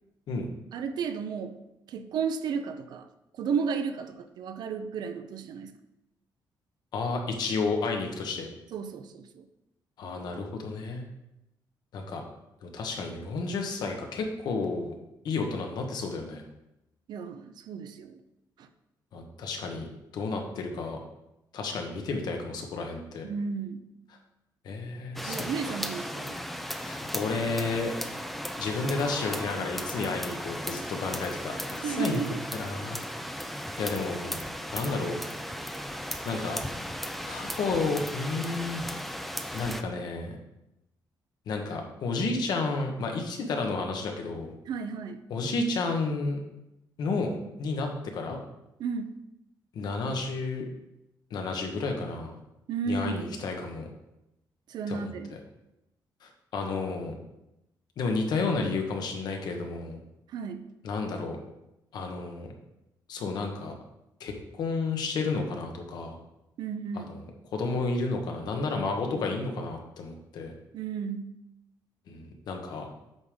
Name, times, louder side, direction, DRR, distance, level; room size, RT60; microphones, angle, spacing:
voice 1, 0.7-1.6 1.9-3.1 3.4-5.7 8.7-9.4 17.1-18.1 18.6-18.7 23.2-23.8 25.2-26.4 31.8-32.4 44.7-45.2 48.8-49.1 52.7-53.3 54.7-55.3 60.3-60.7 66.6-67.1 70.7-71.3, right 6 dB, 65° right, 9 dB, 0.6 m, -33 dB
voice 2, 6.9-8.5 10.0-11.0 11.9-12.2 12.6-14.9 15.2-16.4 19.1-19.9 20.1-21.0 21.5-23.3 24.6-25.4 25.6-25.7 26.8-27.9 28.6-32.2 32.5-33.0 33.8-34.4 34.7-35.2 36.2-36.6 37.3-38.8 39.5-40.4 41.5-44.5 45.3-46.4 47.0-48.4 49.7-50.7 51.3-52.3 52.9-53.9 54.9-55.1 56.2-57.1 58.0-60.0 60.8-61.4 61.9-62.5 63.1-63.7 64.2-66.2 66.9-67.2 67.5-70.5 72.1-72.9, left 3 dB, 60° left, 3 dB, 1.1 m, -31 dB
sound 1, 25.2-39.8, equal, ahead, 0.3 m, -36 dB
8.1 x 3.6 x 5.1 m, 0.90 s
cardioid pair, 180°, 8 cm